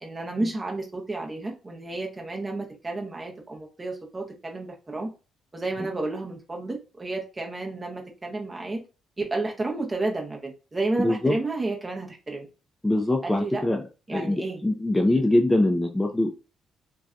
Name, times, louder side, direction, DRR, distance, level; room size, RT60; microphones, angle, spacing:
voice 1, 0.0-5.1 5.5-8.8 9.2-12.5 13.2-13.7 14.1-14.6 15.1-15.2, right 2 dB, 25° right, 0.7 m, -31 dB
voice 2, 11.0-11.4 12.8-13.8 14.1-16.3, left 1 dB, 10° left, 0.3 m, -23 dB
2.6 x 2.2 x 2.4 m
cardioid pair, 90°, 0 cm